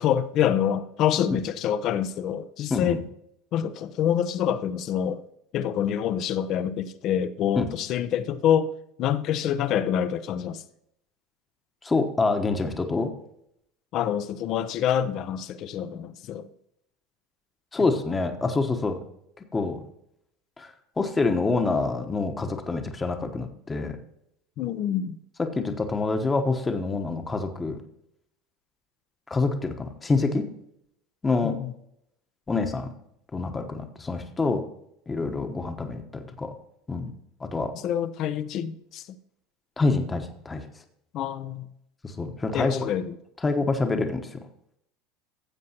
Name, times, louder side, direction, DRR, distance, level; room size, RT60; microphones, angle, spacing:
voice 1, 0.0-3.0 3.5-5.2 5.5-8.7 9.0-10.6 13.9-16.5 24.6-25.2 31.4-31.7 37.7-39.1 41.1-41.7 42.5-43.2, left 9 dB, 55° left, 0.6 m, -26 dB
voice 2, 2.7-3.0 7.5-7.6 11.8-13.1 17.7-19.0 19.4-19.8 20.6-24.0 25.4-27.8 29.3-30.5 31.2-31.5 32.5-32.9 33.3-34.6 35.1-36.5 36.9-37.1 37.4-37.7 39.8-40.7 42.0-42.9 43.4-44.4, left 3 dB, 20° left, 1.1 m, -26 dB
15.0 x 7.5 x 2.9 m
hypercardioid pair, 85°, 0 cm